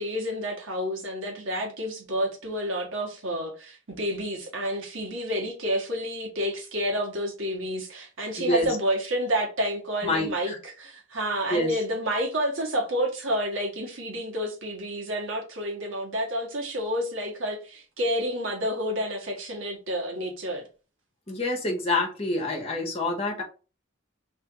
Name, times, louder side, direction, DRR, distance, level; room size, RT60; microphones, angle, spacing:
voice 1, 0.0-20.6 22.6-22.7, equal, 90° right, 1.4 m, -29 dB
voice 2, 8.4-8.8 10.0-10.6 11.5-11.7 21.3-23.4, left 2 dB, 30° left, 1.3 m, -27 dB
3.3 x 2.6 x 4.5 m
head